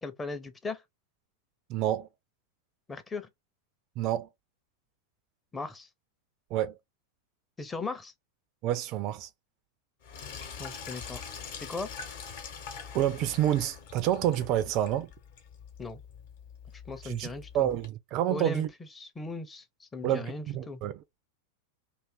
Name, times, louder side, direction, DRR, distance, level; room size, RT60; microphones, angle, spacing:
voice 1, 0.0-0.8 2.9-3.3 5.5-5.9 7.6-8.1 10.6-11.2 11.5-11.9 15.8-16.0 16.9-17.7 18.3-18.6 19.0-20.8, left 3 dB, 15° left, 0.6 m, -38 dB
voice 2, 1.7-2.1 4.0-4.3 6.5-6.7 8.6-9.3 12.9-15.1 17.0-17.3 17.5-18.7 20.0-21.0, right 12 dB, 40° right, 0.3 m, -28 dB
Sink (filling or washing), 10.0-17.9, left 6 dB, 50° left, 1.0 m, -44 dB
2.6 x 2.4 x 3.4 m
figure-of-eight pair, 90°, 0 cm